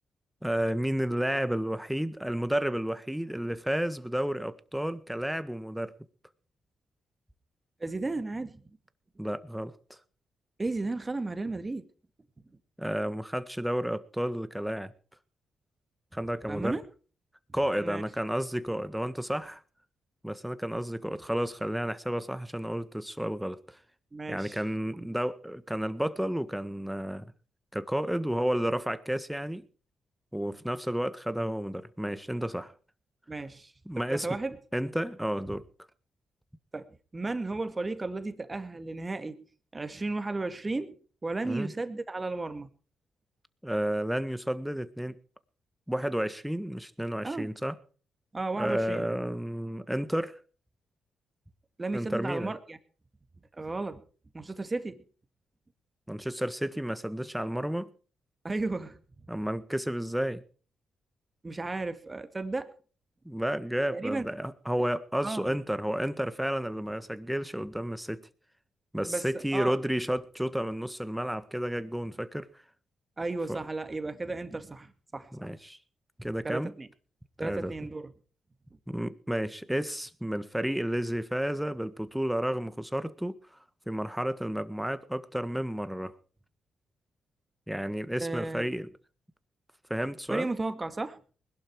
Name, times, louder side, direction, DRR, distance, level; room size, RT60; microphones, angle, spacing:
voice 1, 0.4-5.9 9.2-9.7 12.8-14.9 16.1-16.8 17.5-19.6 20.2-23.8 24.3-27.2 27.7-29.6 30.3-32.7 33.8-34.3 34.7-35.6 41.4-41.7 43.6-45.2 45.9-47.7 48.5-50.4 51.9-52.5 56.1-57.9 59.3-60.4 63.2-68.3 68.9-72.5 73.5-73.6 75.3-75.8 76.2-76.7 77.4-77.7 78.9-83.4 83.9-86.1 87.7-88.9 89.9-90.5, equal, 5° right, 1.6 m, -31 dB
voice 2, 7.8-8.6 10.6-11.9 16.5-16.8 17.8-18.0 24.1-24.6 33.3-33.7 34.1-34.6 36.7-39.4 39.7-42.7 47.2-47.5 48.3-49.1 51.8-52.8 53.6-54.0 54.3-55.0 58.4-59.0 61.4-62.7 63.9-64.3 65.2-65.6 69.1-69.8 73.2-75.5 76.4-76.9 77.4-78.1 88.2-88.7 90.3-91.2, right 3 dB, 25° right, 2.1 m, -34 dB
20.5 x 12.0 x 4.8 m
supercardioid pair, 65°, 0 cm